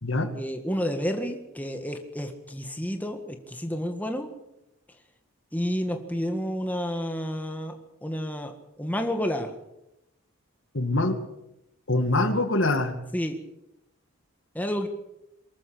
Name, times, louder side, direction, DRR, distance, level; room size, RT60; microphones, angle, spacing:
voice 1, 0.3-4.3 5.5-7.7 8.0-9.5 13.1-13.4 14.5-14.9, equal, 5° left, 5 dB, 1.8 m, -30 dB
voice 2, 10.7-11.2 11.9-12.9, left 2 dB, 60° left, 8 dB, 2.1 m, -24 dB
23.0 x 14.0 x 8.6 m, 0.87 s
head